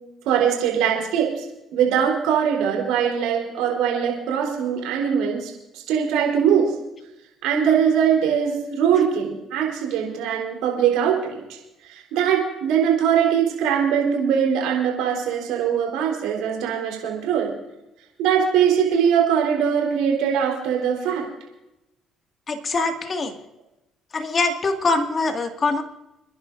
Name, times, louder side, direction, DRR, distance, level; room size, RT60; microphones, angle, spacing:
voice 1, 0.2-1.3 1.7-6.7 7.4-11.6 11.8-17.5 18.2-21.2, right 8 dB, 85° right, -1 dB, 4.0 m, -21 dB
voice 2, 22.5-23.3 24.1-25.8, left 3 dB, 40° left, 4 dB, 2.1 m, -23 dB
29.0 x 11.0 x 2.7 m, 0.93 s
supercardioid pair, 80°, 0 cm